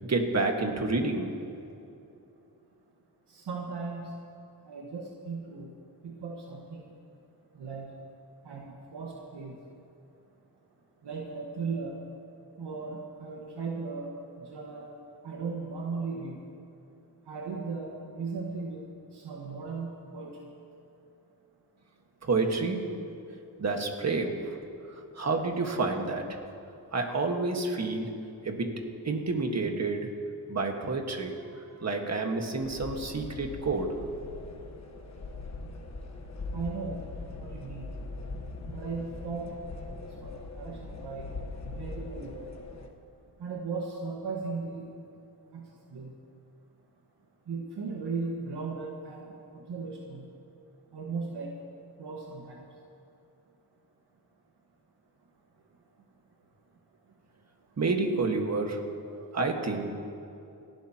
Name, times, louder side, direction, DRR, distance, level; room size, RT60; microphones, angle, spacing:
voice 1, 0.1-1.3 22.2-22.9 23.6-24.6 25.2-26.4 26.9-28.1 28.4-30.2 30.5-34.0 57.8-58.8 59.3-59.9, right 3 dB, 40° right, 3 dB, 1.6 m, -29 dB
voice 2, 3.3-4.1 4.7-5.7 6.0-6.8 7.6-7.9 8.4-9.5 11.0-11.9 12.6-14.1 14.5-14.9 15.2-16.3 17.3-18.8 19.1-20.4 36.5-37.0 37.2-37.9 38.7-39.5 40.2-41.3 41.6-42.5 43.4-44.9 45.5-45.6 45.9-46.1 47.5-49.3 49.7-50.2 50.9-51.5 52.0-52.6, right 4 dB, 85° right, -2 dB, 1.6 m, -37 dB
sound 1, 32.6-42.9, left 3 dB, 40° left, 1.2 m, -41 dB
29.0 x 11.5 x 2.9 m, 2.7 s
wide cardioid pair, 130°, 40 cm